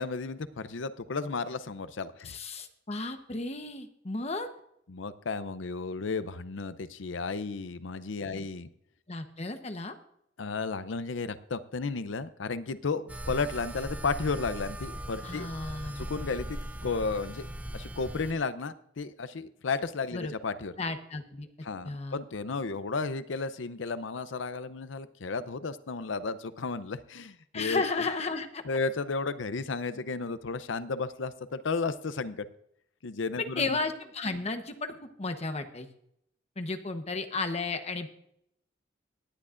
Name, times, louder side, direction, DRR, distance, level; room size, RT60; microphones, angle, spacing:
voice 1, 0.0-2.4 4.9-8.7 10.4-17.5 17.7-20.7 21.6-27.8 28.7-32.4 33.0-33.8, left 4 dB, 80° left, 13 dB, 0.6 m, -33 dB
voice 2, 2.2-4.5 8.3-8.5 9.1-9.9 15.2-16.1 20.1-20.3 20.8-21.5 21.8-22.2 27.5-28.6 33.6-34.9 35.2-35.9 36.6-38.1, left 3 dB, 35° left, 7 dB, 1.0 m, -33 dB
sound 1, 13.1-18.3, right 1 dB, 10° right, 0.6 m, -39 dB
18.0 x 11.0 x 2.5 m, 0.73 s
head